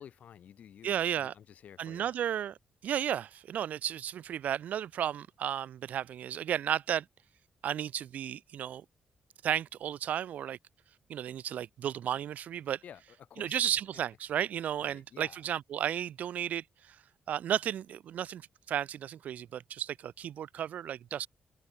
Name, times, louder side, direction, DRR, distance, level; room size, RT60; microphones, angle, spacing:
voice 1, 0.0-2.3 12.8-13.6 14.8-15.4, left 9 dB, 60° left, 2.3 m, -52 dB
voice 2, 0.8-1.3 1.8-2.6 2.8-7.1 7.6-8.8 9.4-10.6 11.1-12.8 13.4-17.0 17.3-21.3, right 10 dB, 65° right, 0.3 m, -33 dB
wide cardioid pair, 175°, 3 cm